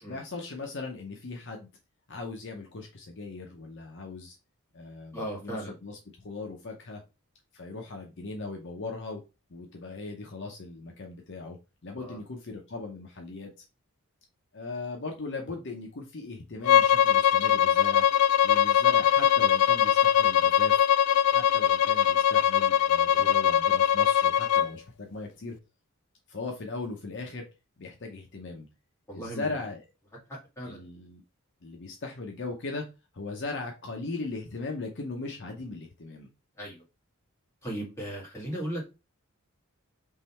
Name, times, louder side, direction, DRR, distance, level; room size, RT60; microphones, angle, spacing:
voice 1, 0.1-1.7 2.1-4.4 4.7-7.0 7.5-9.2 9.5-11.6 11.8-13.6 14.5-18.1 18.4-20.8 21.3-25.6 26.3-27.5 27.8-28.7 29.1-29.8 30.6-31.2 31.6-32.9 33.1-36.3, left 3 dB, 55° left, 2 dB, 0.7 m, -38 dB
voice 2, 5.1-5.7 12.0-12.2 23.2-23.3 29.1-29.5 30.3-30.9 36.6-36.8 37.6-38.9, right 1 dB, 15° left, -4 dB, 1.9 m, -37 dB
Bowed string instrument, 16.6-24.7, left 9 dB, 90° left, 0.3 m, -22 dB
3.7 x 3.1 x 4.3 m, 0.28 s
head